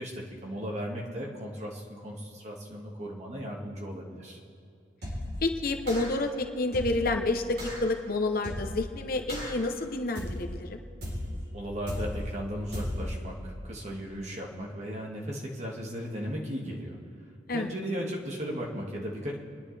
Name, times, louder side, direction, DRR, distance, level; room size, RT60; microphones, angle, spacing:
voice 1, 0.0-4.4 11.5-17.0 17.5-19.4, equal, 35° right, -2 dB, 2.0 m, -36 dB
sound 1, 5.0-5.4 5.9-6.3 6.7-7.1 7.6-7.9 8.4-8.9 9.3-9.7 10.2-10.6 11.0-11.4 11.9-12.3 12.7-13.2, left 1 dB, 55° right, 3.9 m, -35 dB
voice 2, 5.4-10.8 17.5-17.7, left 2 dB, 50° left, 4 dB, 0.9 m, -29 dB
28.0 x 10.5 x 3.4 m, 2.5 s
head